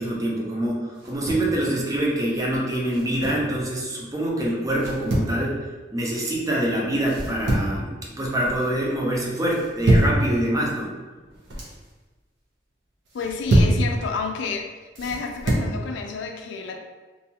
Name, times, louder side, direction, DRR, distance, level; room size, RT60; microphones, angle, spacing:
voice 1, 0.0-5.6 5.9-10.9, right 1 dB, 20° right, -3 dB, 0.5 m, -25 dB
sound 1, 1.0-1.5 2.9-3.5 4.8-5.4 7.1-7.8 8.2-8.7 9.5-10.2 11.2-11.8 13.1-13.8 15.0-15.7, right 1 dB, 90° right, 0.7 m, -24 dB
voice 2, 13.1-14.7 15.0-16.8, left 4 dB, 75° left, 3 dB, 0.3 m, -30 dB
2.7 x 2.3 x 2.7 m, 1.3 s
head